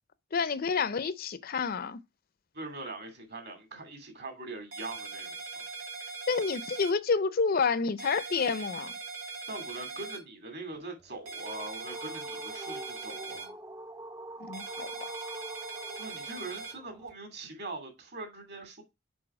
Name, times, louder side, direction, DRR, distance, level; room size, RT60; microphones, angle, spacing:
voice 1, 0.3-2.0 6.3-8.9 14.4-14.9, left 5 dB, 45° left, 0.5 m, -29 dB
voice 2, 2.5-5.7 9.5-13.6 15.9-18.8, right 2 dB, 55° right, 2.5 m, -42 dB
sound 1, 4.7-6.9 8.0-10.2 11.3-13.5 14.5-16.7, right 4 dB, 85° right, 3.0 m, -41 dB
sound 2, 11.0-17.1, right 1 dB, 15° right, 0.5 m, -45 dB
6.2 x 5.1 x 4.7 m
head